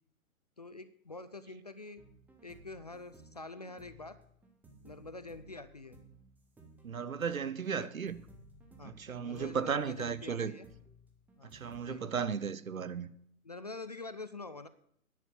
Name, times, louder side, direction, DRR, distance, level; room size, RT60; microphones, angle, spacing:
voice 1, 0.6-2.0 2.4-4.2 4.8-6.0 7.7-7.9 8.8-10.7 11.4-11.5 11.9-12.1 13.4-14.7, left 3 dB, 30° left, 0.4 m, -46 dB
sound 1, 2.0-11.8, right 1 dB, 5° right, 0.9 m, -58 dB
voice 2, 6.8-8.2 8.8-10.5 11.5-13.1, right 6 dB, 70° right, 1.0 m, -35 dB
10.0 x 8.1 x 8.4 m
figure-of-eight pair, 125°, 42 cm